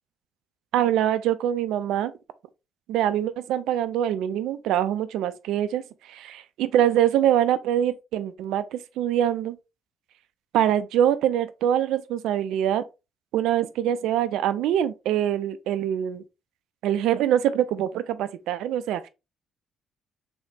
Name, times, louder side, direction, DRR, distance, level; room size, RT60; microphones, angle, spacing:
voice 1, 0.7-2.1 2.9-5.8 6.1-9.6 10.5-12.8 13.3-16.2 16.8-19.1, right 11 dB, 65° right, 0.3 m, -24 dB
3.2 x 3.1 x 2.7 m
figure-of-eight pair, 45°, 0 cm